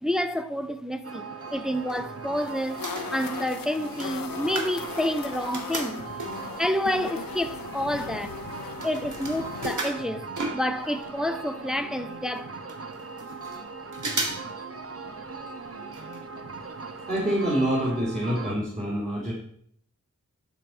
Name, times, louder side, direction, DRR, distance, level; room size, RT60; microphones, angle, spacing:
voice 1, 0.0-2.8 3.1-6.1 6.6-8.4 8.8-12.5, left 1 dB, ahead, 0.5 m, -29 dB
sound 1, 1.0-18.6, right 4 dB, 45° right, 0.9 m, -39 dB
sound 2, 1.5-2.4 2.7-6.6 7.2-7.3 7.5-11.1 11.4-11.5 11.7-11.8 12.3-12.4 12.7-13.6 13.9-14.5 14.8-14.9 15.9-16.2 16.5-16.6 17.1-17.2 17.6-17.7, right 2 dB, 60° right, 2.0 m, -35 dB
sound 3, 2.4-9.8, left 7 dB, 85° left, 0.6 m, -39 dB
voice 2, 17.1-19.3, right 1 dB, 20° right, 2.6 m, -26 dB
11.0 x 5.1 x 4.4 m
wide cardioid pair, 75°, 33 cm